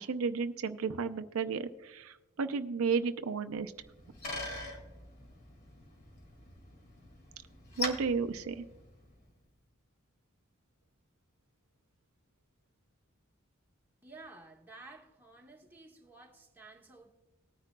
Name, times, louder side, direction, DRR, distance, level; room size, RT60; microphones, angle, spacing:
voice 1, 0.0-3.7 7.8-8.6, right 5 dB, 85° right, 0.5 m, -33 dB
Bicycle, 3.6-9.3, left 2 dB, 45° left, 2.1 m, -43 dB
voice 2, 14.0-17.2, right 3 dB, 10° right, 1.4 m, -53 dB
19.0 x 9.8 x 2.2 m
head